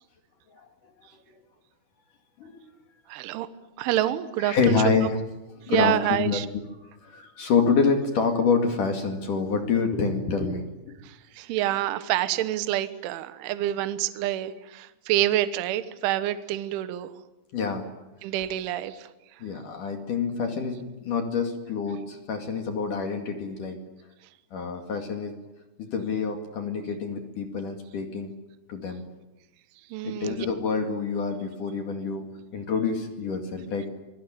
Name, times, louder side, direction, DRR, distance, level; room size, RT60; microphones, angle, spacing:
voice 1, 3.1-3.5 3.8-5.1 5.7-6.5 11.0-17.1 18.2-19.1 29.9-30.5, right 13 dB, 75° right, 12 dB, 3.4 m, -27 dB
voice 2, 4.4-5.2 5.6-6.4 7.0-11.0 17.5-17.8 19.4-23.8 24.5-25.3 25.8-28.3 28.7-29.1 30.0-32.3 32.5-33.9, left 5 dB, 50° left, 5 dB, 3.0 m, -27 dB
27.5 x 22.5 x 8.9 m, 1.0 s
omnidirectional pair, 6.0 m